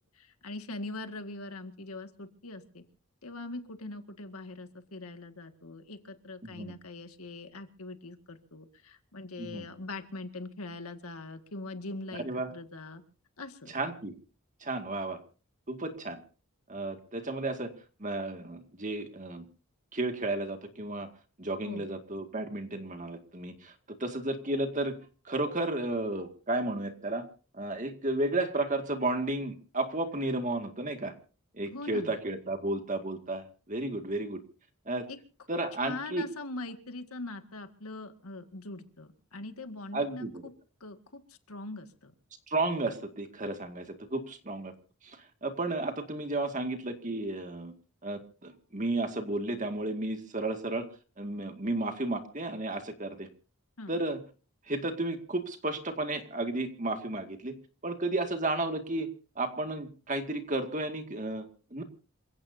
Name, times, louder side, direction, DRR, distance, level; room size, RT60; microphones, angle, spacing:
voice 1, 0.1-2.8 3.2-13.0 13.4-13.7 21.7-21.9 31.7-32.1 35.1-35.2 35.8-40.5 40.8-42.1 53.8-54.0, left 2 dB, 85° left, 7 dB, 2.0 m, -42 dB
voice 2, 6.4-6.7 9.4-9.6 12.2-12.5 13.7-14.2 14.6-15.2 15.7-16.2 16.7-17.7 18.0-19.4 19.9-21.1 21.4-23.7 24.0-25.0 25.2-27.3 27.5-31.1 31.5-34.4 34.9-35.1 35.5-36.3 39.9-40.4 42.5-44.7 45.0-47.7 48.0-50.9 51.2-53.3 53.9-54.2 54.7-57.5 57.8-59.1 59.4-61.8, right 2 dB, 35° right, 6 dB, 2.1 m, -33 dB
27.5 x 16.5 x 2.8 m, 0.38 s
head